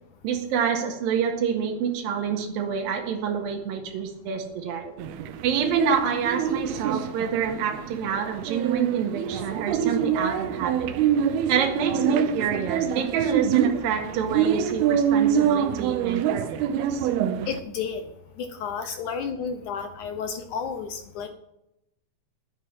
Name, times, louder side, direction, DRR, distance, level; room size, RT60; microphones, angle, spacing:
voice 1, 0.2-4.9 5.4-10.9 11.5-17.1 18.8-19.0, right 7 dB, 70° right, 3 dB, 3.3 m, -27 dB
sound 1, 5.0-17.6, right 8 dB, 85° right, 2.8 m, -26 dB
voice 2, 17.5-18.0 18.4-21.3, left 6 dB, 70° left, 7 dB, 1.9 m, -32 dB
11.0 x 10.5 x 6.0 m, 0.84 s
omnidirectional pair, 4.4 m